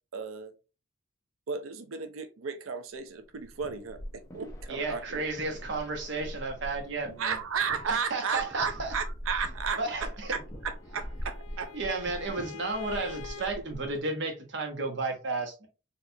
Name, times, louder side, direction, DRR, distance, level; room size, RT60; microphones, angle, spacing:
voice 1, 0.1-0.5 1.5-5.3 7.2-11.8 13.6-13.7, right 5 dB, 90° right, 0.5 m, -34 dB
sound 1, 3.2-14.0, equal, 15° left, 0.6 m, -42 dB
voice 2, 4.7-7.3 7.9-8.9 9.8-10.3 11.7-15.7, right 3 dB, 60° right, 1.0 m, -33 dB
Bowed string instrument, 10.4-13.6, left 8 dB, 80° left, 0.5 m, -46 dB
4.2 x 2.5 x 2.7 m
head